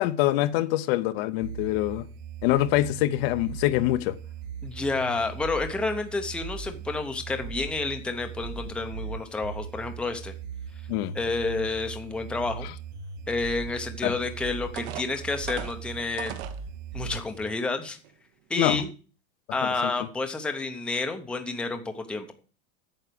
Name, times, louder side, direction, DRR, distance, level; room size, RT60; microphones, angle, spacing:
voice 1, 0.0-2.1 2.4-4.2 10.9-11.1 14.0-14.1 18.5-18.8 19.8-19.9, left 15 dB, 55° left, 0.8 m, -24 dB
sound 1, 1.4-17.4, right 6 dB, 45° right, 2.1 m, -39 dB
voice 2, 4.6-10.3 11.1-12.7 13.3-16.3 16.9-18.0 18.5-18.9 19.5-22.3, left 3 dB, 5° left, 0.7 m, -30 dB
sound 2, 14.2-14.3 14.8-16.6 17.3-17.4 17.9-18.1, right 11 dB, 65° right, 1.4 m, -38 dB
9.0 x 7.3 x 6.8 m
supercardioid pair, 165°, 37 cm